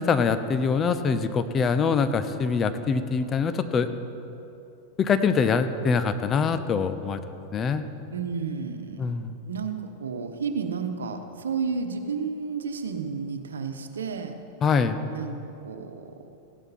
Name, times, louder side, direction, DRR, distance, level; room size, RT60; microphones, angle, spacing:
voice 1, 0.0-3.9 5.0-7.2 7.5-7.8 9.0-9.3 14.6-15.0, left 5 dB, 30° left, 11 dB, 0.8 m, -24 dB
voice 2, 8.1-9.1 9.5-9.7 10.0-14.3 15.1-15.4 15.6-16.1, right 5 dB, 85° right, 6 dB, 1.1 m, -31 dB
16.0 x 11.5 x 4.3 m, 2.8 s
hypercardioid pair, 105°, 0 cm